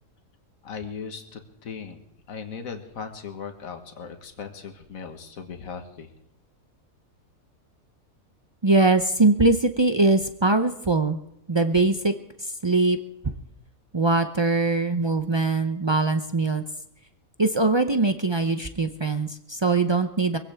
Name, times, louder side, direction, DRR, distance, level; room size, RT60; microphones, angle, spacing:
voice 1, 0.6-2.0 2.3-6.1, left 6 dB, 70° left, 6 dB, 1.8 m, -38 dB
voice 2, 8.6-11.2 11.5-12.1 12.4-13.0 13.9-16.6 17.4-20.4, right 3 dB, 45° right, 8 dB, 0.3 m, -22 dB
23.0 x 16.5 x 3.5 m, 0.81 s
omnidirectional pair, 1.5 m